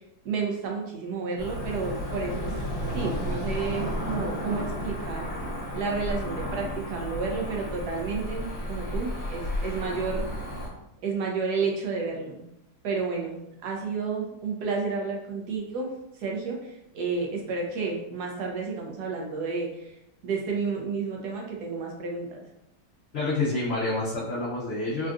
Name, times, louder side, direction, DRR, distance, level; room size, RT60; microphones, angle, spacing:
voice 1, 0.2-2.5 2.9-5.3 5.7-10.2 11.0-12.4 12.8-15.9 16.2-19.9 20.2-22.4, right 4 dB, 80° right, 0 dB, 1.3 m, -31 dB
Cricket / Motor vehicle (road), 1.4-10.7, equal, 35° left, 1.0 m, -32 dB
voice 2, 23.1-25.1, left 2 dB, 55° left, -6 dB, 0.7 m, -28 dB
3.7 x 2.3 x 2.4 m, 0.83 s
omnidirectional pair, 1.7 m